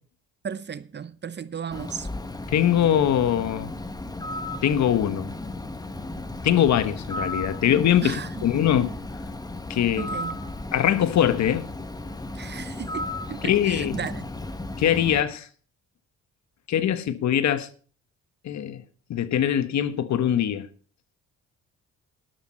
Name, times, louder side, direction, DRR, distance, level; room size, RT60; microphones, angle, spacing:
voice 1, 0.4-2.1 8.0-8.3 10.0-10.4 12.3-14.3, right 7 dB, 35° right, 0.8 m, -35 dB
Bird, 1.7-15.2, left 2 dB, 15° left, 1.3 m, -35 dB
voice 2, 2.5-3.7 4.6-5.3 6.4-8.9 9.7-10.1 10.7-11.7 13.4-14.0 14.8-15.5 16.7-17.7 18.4-18.8 19.1-20.7, left 10 dB, 65° left, 1.2 m, -22 dB
12.0 x 11.5 x 4.3 m
cardioid pair, 90°, 30 cm